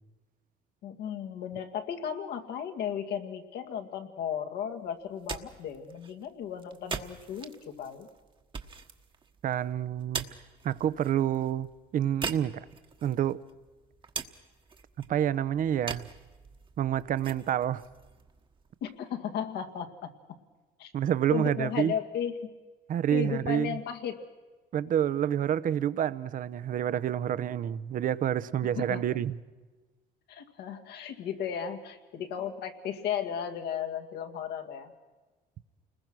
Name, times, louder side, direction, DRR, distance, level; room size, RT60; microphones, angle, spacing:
voice 1, 0.8-8.1 18.8-20.1 20.8-20.9 21.3-22.4 23.1-24.2 28.6-29.0 30.3-34.9, left 8 dB, 80° left, 2.2 m, -35 dB
sound 1, 5.0-19.0, right 5 dB, 30° right, 1.3 m, -43 dB
voice 2, 9.4-10.3 10.6-11.7 11.9-12.6 13.0-13.4 15.1-16.1 16.8-17.8 20.9-21.9 22.9-23.8 24.7-29.4, right 10 dB, 55° right, 0.8 m, -28 dB
29.5 x 20.5 x 6.2 m
cardioid pair, 110°, 17 cm